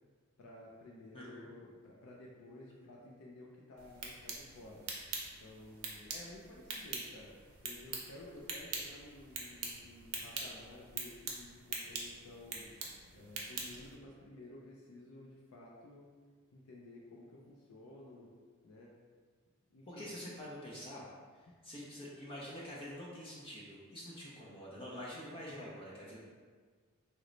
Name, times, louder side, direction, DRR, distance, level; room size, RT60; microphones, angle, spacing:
voice 1, 0.4-5.1 5.4-12.7 13.1-16.1 16.5-18.3 18.6-19.0 19.7-20.1, left 2 dB, 75° left, -3 dB, 0.4 m, -53 dB
voice 2, 1.1-1.5 19.9-21.0 21.3-26.2, equal, 25° left, -6 dB, 0.5 m, -46 dB
sound 1, 3.8-13.9, right 4 dB, 80° right, 0.6 m, -44 dB
3.0 x 2.0 x 3.8 m, 1.5 s
head